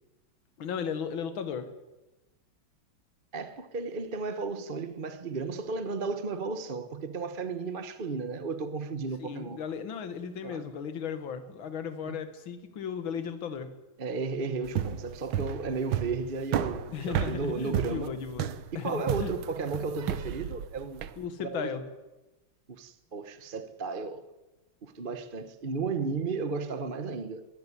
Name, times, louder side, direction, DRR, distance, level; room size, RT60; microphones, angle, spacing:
voice 1, 0.6-1.7 9.2-13.7 16.9-18.5 18.8-19.3 21.2-21.8, left 7 dB, 75° left, 2.3 m, -36 dB
voice 2, 3.3-9.6 10.4-10.6 12.0-12.2 14.0-18.2 18.7-21.1 21.4-21.7 22.7-24.2 24.8-27.4, right 4 dB, 35° right, 1.0 m, -34 dB
sound 1, 14.6-21.2, right 9 dB, 75° right, 1.8 m, -32 dB
22.0 x 15.5 x 9.9 m
omnidirectional pair, 2.2 m